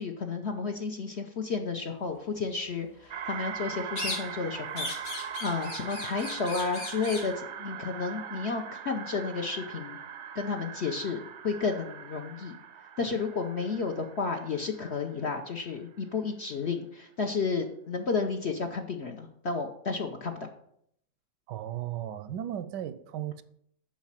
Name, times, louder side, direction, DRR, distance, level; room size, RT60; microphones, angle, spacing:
voice 1, 0.0-4.9 5.4-10.0 10.3-12.6 13.0-20.5, left 4 dB, 55° left, 0.8 m, -32 dB
sound 1, 3.1-15.8, right 8 dB, 60° right, 0.7 m, -41 dB
sound 2, 4.0-4.5 4.8-7.3, left 2 dB, 85° left, 2.6 m, -37 dB
voice 2, 21.5-23.4, right 11 dB, 80° right, 1.2 m, -35 dB
7.3 x 5.3 x 7.4 m
omnidirectional pair, 1.9 m